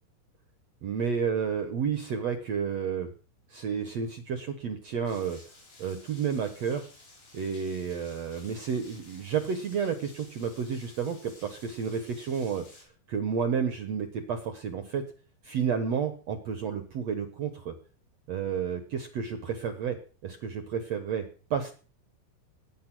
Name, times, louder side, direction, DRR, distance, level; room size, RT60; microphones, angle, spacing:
voice 1, 0.8-3.1 3.5-5.4 5.8-6.8 7.3-12.6 13.1-15.0 15.4-17.7 18.3-20.0 20.2-21.2 21.5-21.7, right 6 dB, 75° right, 7 dB, 1.5 m, -31 dB
Rain, 5.0-12.8, left 2 dB, 75° left, 9.5 m, -54 dB
19.5 x 9.9 x 6.2 m, 0.39 s
omnidirectional pair, 5.1 m